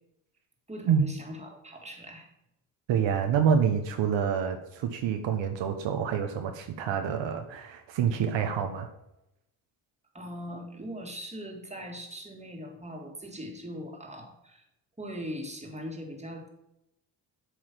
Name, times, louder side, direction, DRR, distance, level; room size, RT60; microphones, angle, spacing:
voice 1, 0.7-2.3 10.1-14.7 15.0-16.5, equal, 15° right, 2 dB, 1.8 m, -40 dB
voice 2, 2.9-8.9, right 7 dB, 70° right, 5 dB, 0.9 m, -27 dB
8.1 x 3.1 x 5.8 m, 0.86 s
supercardioid pair, 50°, 46 cm